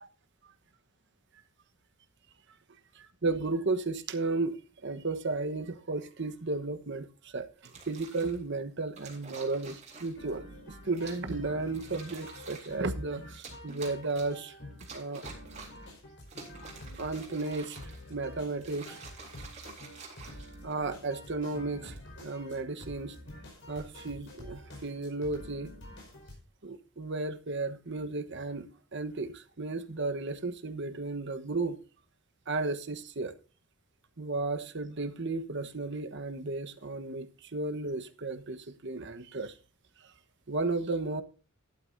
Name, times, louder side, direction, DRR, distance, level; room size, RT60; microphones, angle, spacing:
voice 1, 3.0-4.6 4.8-7.5 7.9-14.5 14.9-15.2 17.0-17.8 18.1-19.0 20.6-23.2 23.7-25.7 26.6-31.8 32.5-33.3 34.2-39.6 40.0-40.1 40.5-41.2, right 3 dB, 55° right, 1.1 m, -34 dB
sound 1, 7.6-8.4 9.0-10.3 10.9-11.3 11.7-12.8 13.3-14.4 14.8-15.9 16.2-18.1 18.6-21.0 21.7-22.0, right 4 dB, 35° right, 3.6 m, -49 dB
sound 2, 10.2-26.4, left 1 dB, 55° left, 4.9 m, -48 dB
12.5 x 11.5 x 2.6 m
head